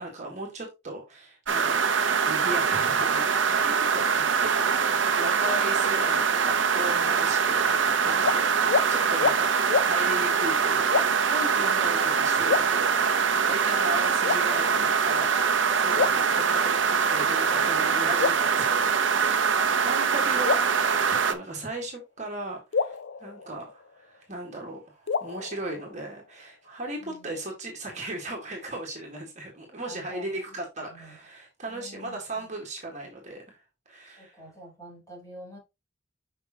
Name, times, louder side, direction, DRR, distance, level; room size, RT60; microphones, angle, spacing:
voice 1, 0.0-1.8 2.2-33.6 33.9-34.4, right 1 dB, 35° right, 1.9 m, -37 dB
sound 1, 1.5-21.3, right 6 dB, 80° right, 0.9 m, -23 dB
voice 2, 8.0-9.1 11.8-11.9 16.0-16.4 27.0-27.3 29.9-30.4 30.8-31.2 31.7-32.5 34.2-35.6, equal, 15° left, 3.8 m, -48 dB
sound 2, 8.2-8.4 8.7-8.9 9.2-9.4 9.7-9.9 10.9-11.3 12.5-13.3 14.2-15.0 16.0-16.9 18.2-19.3 20.4-21.6 22.7-24.2 25.1-26.3, left 5 dB, 70° left, 0.5 m, -29 dB
6.8 x 5.5 x 3.0 m
head